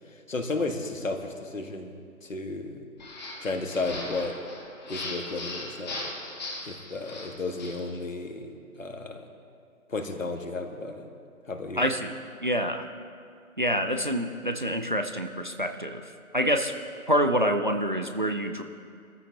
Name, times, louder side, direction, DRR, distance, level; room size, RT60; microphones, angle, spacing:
voice 1, 0.1-1.9 2.2-2.8 3.4-4.4 4.9-6.0 6.6-9.3 9.9-11.1 11.5-11.8, left 3 dB, 65° left, 4 dB, 1.7 m, -33 dB
sound 1, 3.0-7.9, left 2 dB, 30° left, 1.8 m, -38 dB
voice 2, 11.8-12.1 12.4-12.9 13.6-16.0 16.3-16.7 17.1-18.6, equal, 35° right, 6 dB, 0.5 m, -26 dB
23.0 x 14.0 x 2.8 m, 2.3 s
figure-of-eight pair, 150°, 42 cm